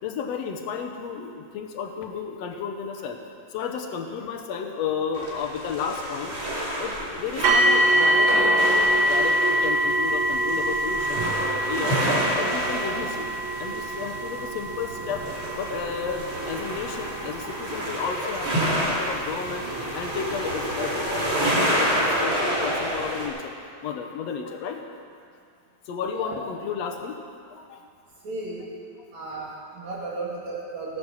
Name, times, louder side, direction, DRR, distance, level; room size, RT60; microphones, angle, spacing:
voice 1, 0.0-3.2 3.5-6.4 6.8-12.0 12.3-13.3 13.6-15.3 15.5-19.7 19.9-23.5 23.8-24.8 25.9-27.2 27.5-27.8, left 6 dB, 70° left, 5 dB, 1.8 m, -32 dB
sound 1, 4.9-5.7 6.3-7.3 7.5-11.5, left 1 dB, 45° left, 4.3 m, -36 dB
sound 2, 5.1-23.3, equal, 40° right, 3.1 m, -29 dB
sound 3, 7.4-20.3 21.2-21.3 21.8-21.9, right 1 dB, 80° right, 1.1 m, -25 dB
voice 2, 28.2-28.6 29.1-31.0, right 2 dB, 65° right, -5 dB, 4.1 m, -34 dB
16.5 x 9.0 x 6.4 m, 2.3 s
omnidirectional pair, 3.5 m